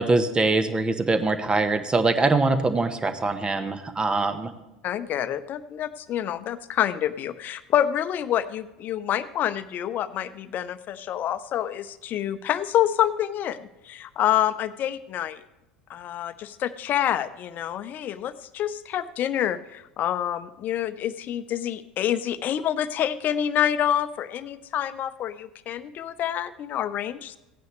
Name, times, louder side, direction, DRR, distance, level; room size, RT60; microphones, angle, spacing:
voice 1, 0.0-4.5, right 3 dB, 20° right, 10 dB, 1.1 m, -23 dB
voice 2, 4.8-15.4 15.9-27.4, left 11 dB, 45° left, 13 dB, 0.7 m, -27 dB
16.0 x 9.3 x 3.2 m, 0.99 s
hypercardioid pair, 70°, 4 cm